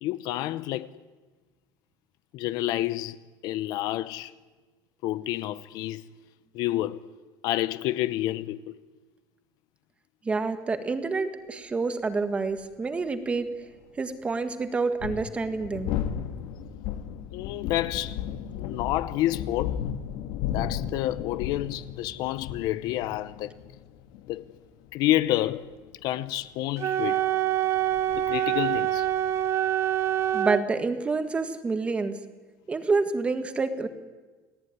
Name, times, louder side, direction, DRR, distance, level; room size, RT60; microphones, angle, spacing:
voice 1, 0.0-0.9 2.3-3.2 3.4-4.3 5.0-6.1 6.5-7.1 7.4-8.7 17.3-18.2 18.5-19.8 20.5-23.5 24.3-24.4 24.9-25.7 26.0-27.2 28.2-29.1, left 15 dB, 50° left, 0.8 m, -29 dB
voice 2, 10.2-13.5 14.0-15.9 30.3-32.1 32.7-33.9, right 4 dB, 15° right, 1.5 m, -28 dB
sound 1, 12.6-12.7 14.8-30.4, left 9 dB, 70° left, 1.9 m, -35 dB
Wind instrument woodwind instrument, 26.8-30.7, right 11 dB, 30° right, 0.8 m, -25 dB
29.0 x 17.5 x 9.6 m
cardioid pair, 180°, 8 cm